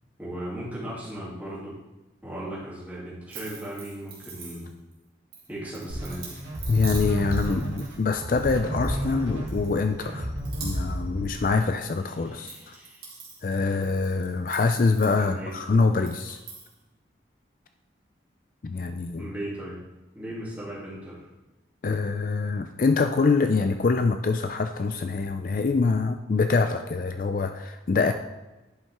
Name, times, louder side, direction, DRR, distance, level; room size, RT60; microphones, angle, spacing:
voice 1, 0.2-1.8 2.2-4.7 5.5-6.5 12.2-13.1 15.2-15.5 19.2-19.8 20.1-21.3, right 1 dB, 10° right, -8 dB, 2.6 m, -37 dB
sound 1, 3.3-4.9 5.3-9.2 9.5-10.1 10.4-11.0 11.3-12.0 12.3-15.6 16.0-16.7, right 5 dB, 50° right, 2.3 m, -44 dB
sound 2, 5.9-11.7, equal, 85° right, 1.9 m, -31 dB
voice 2, 6.7-10.3 10.6-12.8 13.4-16.4 18.6-19.3 21.8-28.1, left 4 dB, 45° left, 7 dB, 0.4 m, -25 dB
10.0 x 5.5 x 3.5 m, 1.1 s
head